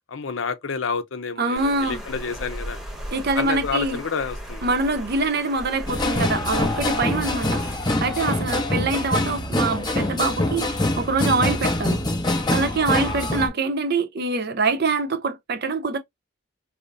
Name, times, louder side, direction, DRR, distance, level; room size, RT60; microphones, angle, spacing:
voice 1, 0.1-2.8 3.4-4.6 7.1-7.3 12.8-13.2, left 5 dB, 70° left, 0.6 m, -29 dB
voice 2, 1.4-2.0 3.1-4.0 4.6-12.0 12.5-16.0, right 3 dB, 55° right, 0.6 m, -24 dB
Water, 1.6-7.8, equal, ahead, 1.1 m, -36 dB
sound 1, 5.9-13.5, left 1 dB, 20° left, 0.8 m, -24 dB
5.2 x 2.0 x 2.5 m
head